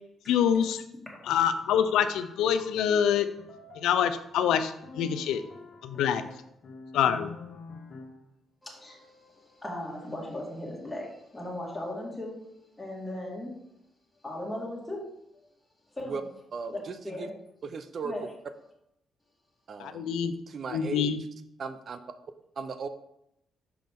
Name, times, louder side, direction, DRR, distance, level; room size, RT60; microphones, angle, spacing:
voice 1, 0.3-0.8 1.3-3.3 3.7-5.4 5.8-6.2 6.9-7.3 19.8-20.3 20.7-21.2, left 8 dB, 85° left, 10 dB, 0.5 m, -26 dB
sound 1, 1.2-8.3, left 4 dB, 50° left, 1.0 m, -48 dB
voice 2, 8.6-13.5 14.2-15.0 15.9-16.3 16.7-17.3 18.0-18.3 18.6-18.7, left 1 dB, 10° left, -3 dB, 2.0 m, -38 dB
voice 3, 17.6-18.1 19.7-20.0 20.5-21.1 21.6-22.0 22.6-22.9, right 5 dB, 50° right, 10 dB, 0.6 m, -36 dB
5.9 x 5.0 x 3.6 m, 0.79 s
cardioid pair, 90°, 0 cm